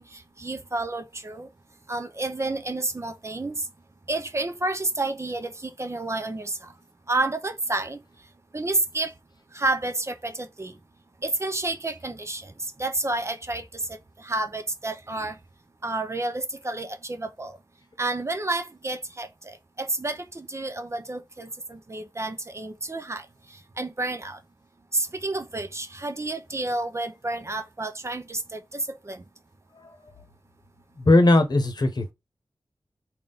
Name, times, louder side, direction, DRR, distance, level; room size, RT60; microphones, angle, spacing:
voice 1, 0.0-1.5 1.9-3.7 4.1-6.7 7.1-8.0 8.5-9.1 9.5-10.7 11.2-12.5 12.8-13.8 14.2-15.4 15.8-17.6 18.0-23.3 23.8-24.4 24.9-29.2, right 2 dB, 30° right, 0.6 m, -30 dB
voice 2, 31.0-32.1, left 2 dB, 50° left, 0.9 m, -19 dB
3.7 x 2.4 x 3.8 m
wide cardioid pair, 85°, 9 cm